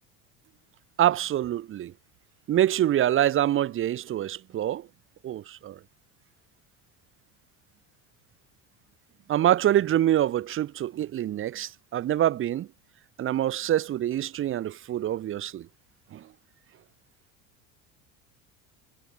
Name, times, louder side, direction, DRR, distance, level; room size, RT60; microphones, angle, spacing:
voice 1, 1.0-1.9 2.5-4.9 5.2-5.8 9.3-12.7 13.2-15.7 16.1-16.2, right 12 dB, 35° right, 1.0 m, -25 dB
cardioid pair, 135°, 35 cm